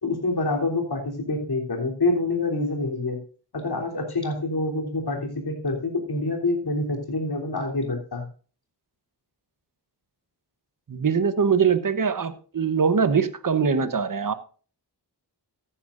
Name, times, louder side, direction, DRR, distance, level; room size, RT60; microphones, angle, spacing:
voice 1, 0.0-3.2 3.5-8.3, left 2 dB, 60° left, 2 dB, 3.4 m, -26 dB
voice 2, 10.9-14.3, right 6 dB, 50° right, 12 dB, 1.0 m, -22 dB
14.5 x 10.0 x 2.6 m, 0.38 s
wide cardioid pair, 65°, 42 cm